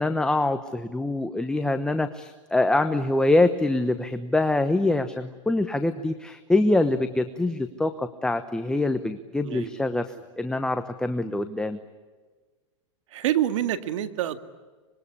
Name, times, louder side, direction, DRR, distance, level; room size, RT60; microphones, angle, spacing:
voice 1, 0.0-11.8, left 2 dB, 5° left, 8 dB, 1.0 m, -24 dB
voice 2, 9.4-9.8 13.1-14.4, right 12 dB, 70° right, 10 dB, 2.0 m, -27 dB
25.5 x 21.5 x 10.0 m, 1.4 s
hypercardioid pair, 130°, 16 cm